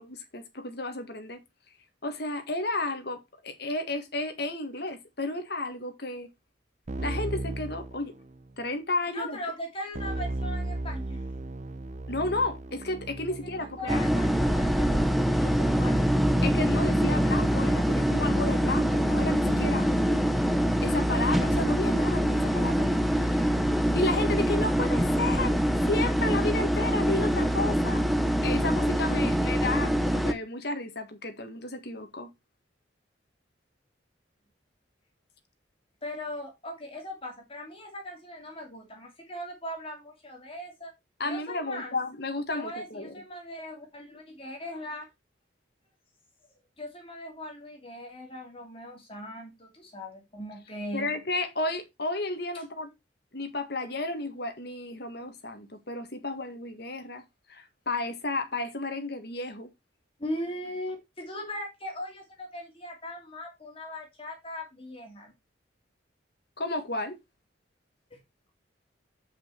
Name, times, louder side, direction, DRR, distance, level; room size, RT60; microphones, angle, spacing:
voice 1, 0.0-1.4 2.0-6.3 7.0-8.1 8.6-9.4 12.1-14.0 16.4-19.9 20.8-23.5 23.9-25.6 25.9-28.0 28.4-32.3 41.2-43.1 50.9-52.9 53.3-57.2 57.5-59.7 66.6-67.2, left 2 dB, 55° left, 1.7 m, -32 dB
Keyboard (musical), 6.9-8.6 9.9-18.3, right 2 dB, 40° right, 0.6 m, -37 dB
voice 2, 9.1-11.2 13.6-16.2 36.0-40.9 41.2-42.0 42.5-45.0 46.8-51.1 52.5-52.6 60.2-65.3 68.1-68.2, left 1 dB, 30° left, 2.8 m, -39 dB
sound 1, 13.9-30.3, equal, ahead, 0.7 m, -24 dB
8.0 x 5.9 x 4.4 m
head